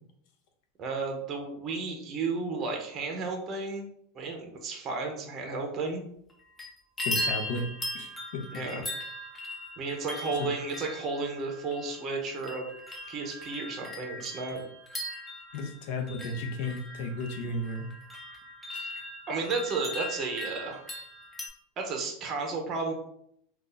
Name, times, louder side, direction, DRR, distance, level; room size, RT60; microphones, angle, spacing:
voice 1, 0.8-3.9 4.1-6.0 8.5-8.8 9.8-12.7 13.1-14.6 18.8-18.9 19.3-20.8 21.8-22.9, right 4 dB, 30° right, 2 dB, 0.7 m, -33 dB
sound 1, 6.3-6.7 7.0-21.5, left 1 dB, 10° left, 0.5 m, -39 dB
voice 2, 7.0-7.7 7.9-8.4 10.4-10.5 15.5-17.9, left 2 dB, 60° left, 3 dB, 0.6 m, -34 dB
2.6 x 2.3 x 3.8 m, 0.70 s
supercardioid pair, 155°, 0 cm